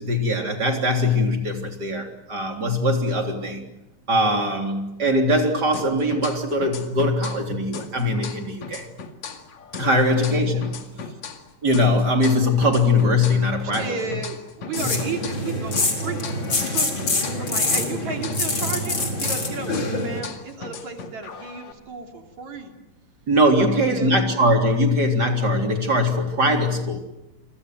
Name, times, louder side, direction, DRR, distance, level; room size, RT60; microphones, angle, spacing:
voice 1, 0.0-3.7 4.1-8.9 9.8-10.7 11.6-13.9 14.8-14.9 23.3-27.0, left 1 dB, 30° right, 3 dB, 3.9 m, -21 dB
sound 1, 5.7-7.5 7.7-11.5 11.7-15.5 15.7-19.5 19.7-21.7, left 5 dB, 65° left, 3.3 m, -37 dB
voice 2, 10.7-11.1 13.8-16.9 17.4-22.7 23.6-24.4, right 4 dB, 65° right, 3 dB, 4.3 m, -34 dB
sound 2, 14.7-20.2, left 2 dB, 40° left, 4.8 m, -25 dB
29.0 x 25.0 x 7.8 m, 0.89 s
omnidirectional pair, 3.5 m